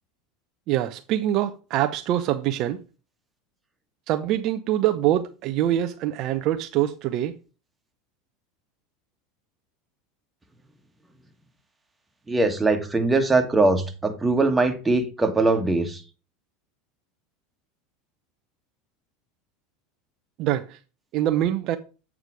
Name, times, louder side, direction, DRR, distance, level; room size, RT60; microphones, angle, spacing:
voice 1, 0.7-2.8 4.1-7.4 20.4-20.8 21.1-21.8, right 12 dB, 55° right, 0.6 m, -24 dB
voice 2, 12.3-16.0, right 2 dB, 15° right, 1.5 m, -21 dB
8.2 x 4.9 x 4.7 m
hypercardioid pair, 85°, 0 cm